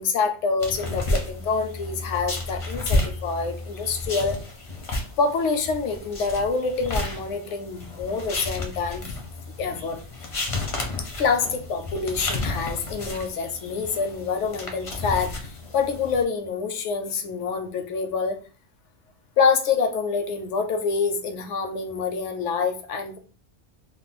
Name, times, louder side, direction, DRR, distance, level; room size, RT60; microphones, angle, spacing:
voice 1, 0.0-4.4 5.2-9.0 9.6-10.0 11.0-18.4 19.4-23.2, left 5 dB, 85° left, 6 dB, 0.9 m, -26 dB
sound 1, 0.6-16.2, left 2 dB, 40° left, 0.5 m, -32 dB
2.4 x 2.0 x 3.8 m, 0.39 s
omnidirectional pair, 1.2 m